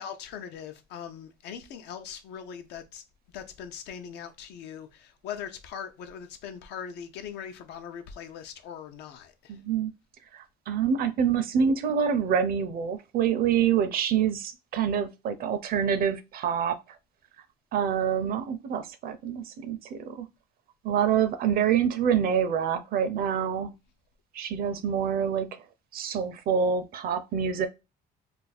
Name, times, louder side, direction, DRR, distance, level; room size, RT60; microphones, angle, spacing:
voice 1, 0.0-3.0 3.3-9.6, left 8 dB, 85° left, 0.6 m, -41 dB
voice 2, 9.5-9.9 10.3-16.8 17.7-20.3 20.8-23.7 24.3-25.6 25.9-27.7, right 8 dB, 60° right, 0.5 m, -26 dB
2.5 x 2.3 x 4.0 m
cardioid pair, 110°, 17 cm